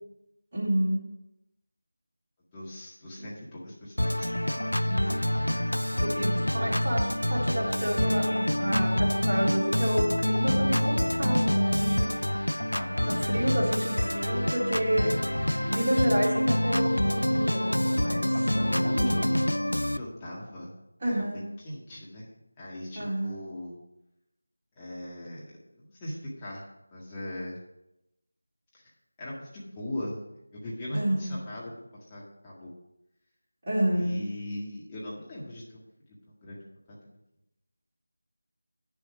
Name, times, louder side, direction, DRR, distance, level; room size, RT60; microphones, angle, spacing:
voice 1, 0.5-1.0 4.9-5.0 6.0-12.2 13.1-15.1 15.6-19.1 21.0-21.4 23.0-23.3 30.9-31.3 33.7-34.2, right 1 dB, 30° right, -9 dB, 3.9 m, -29 dB
voice 2, 2.5-4.8 12.7-13.0 13.3-13.5 14.9-15.0 18.3-18.5 18.9-19.3 19.8-20.7 21.0-23.8 24.8-27.6 28.7-28.8 29.2-30.2 30.5-31.7 32.1-32.7 33.9-35.8 36.4-36.6 36.9-37.0, left 1 dB, 15° left, -6 dB, 1.8 m, -39 dB
Organ, 4.0-20.0, left 1 dB, 90° left, 0.4 m, -26 dB
9.5 x 7.1 x 4.8 m, 0.87 s
figure-of-eight pair, 165°, 0 cm